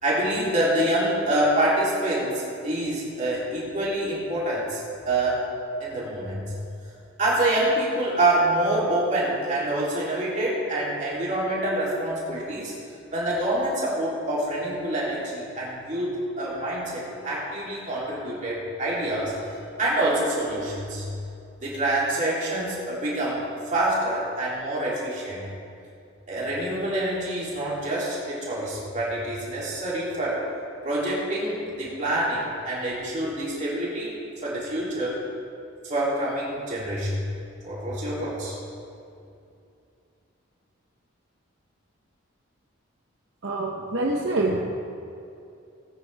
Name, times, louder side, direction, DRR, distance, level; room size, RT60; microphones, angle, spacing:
voice 1, 0.0-5.5 5.8-6.6 7.2-12.7 13.1-19.4 19.8-21.1 21.6-25.4 26.3-30.5 30.8-35.2 35.8-37.2 37.6-38.6, right 1 dB, 35° right, -7 dB, 3.2 m, -26 dB
voice 2, 43.4-44.6, right 2 dB, 60° right, -2 dB, 1.0 m, -25 dB
18.0 x 9.7 x 3.5 m, 2.6 s
head